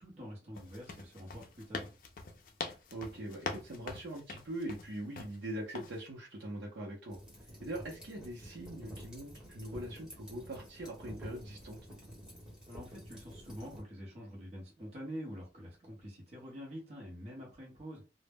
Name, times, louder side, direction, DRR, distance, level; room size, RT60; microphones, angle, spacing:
voice 1, 0.0-1.9 12.7-18.0, equal, 35° right, -3 dB, 0.8 m, -46 dB
sound 1, 0.5-5.4 5.7-6.0, left 4 dB, 50° left, 0.4 m, -43 dB
voice 2, 2.6-7.2 7.6-11.8, right 1 dB, 85° right, -2 dB, 0.6 m, -42 dB
sound 2, 7.1-13.8, equal, 5° right, 0.9 m, -50 dB
2.0 x 2.0 x 3.3 m, 0.31 s
head